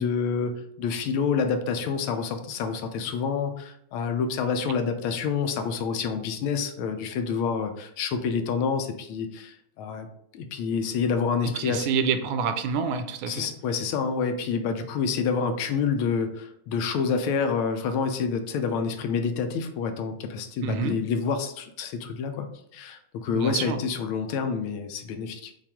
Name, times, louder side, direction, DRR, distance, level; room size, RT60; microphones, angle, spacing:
voice 1, 0.0-10.1 10.3-11.9 13.3-22.5 22.7-25.5, left 5 dB, 90° left, 7 dB, 1.5 m, -28 dB
voice 2, 11.5-13.5 20.6-21.0 23.3-23.8, right 6 dB, 80° right, 8 dB, 1.4 m, -27 dB
5.8 x 2.4 x 3.5 m, 0.72 s
omnidirectional pair, 2.3 m